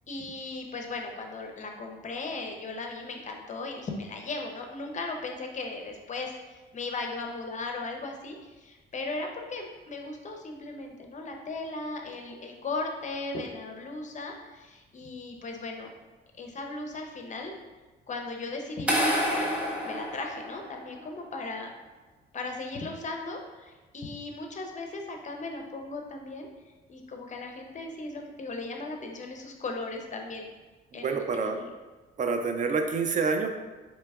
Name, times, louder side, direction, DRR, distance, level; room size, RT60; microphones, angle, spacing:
voice 1, 0.1-15.9 16.4-17.5 18.1-19.5 19.8-21.7 22.3-26.5 26.9-30.5 30.9-31.7, left 3 dB, 40° left, 3 dB, 0.6 m, -37 dB
sound 1, 18.9-21.0, equal, 5° right, 0.9 m, -28 dB
voice 2, 31.0-31.6 32.2-33.5, right 4 dB, 40° right, 5 dB, 0.4 m, -27 dB
4.4 x 2.9 x 2.3 m, 1.2 s
cardioid pair, 90°, 20 cm